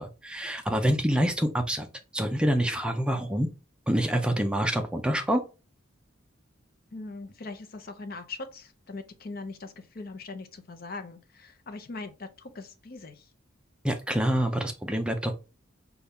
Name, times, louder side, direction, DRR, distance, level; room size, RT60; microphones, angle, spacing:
voice 1, 0.0-1.9 2.1-3.5 3.9-5.4 13.8-15.3, equal, 5° right, 0.4 m, -26 dB
voice 2, 6.9-13.2, left 3 dB, 50° left, 0.6 m, -41 dB
5.3 x 2.3 x 3.5 m
head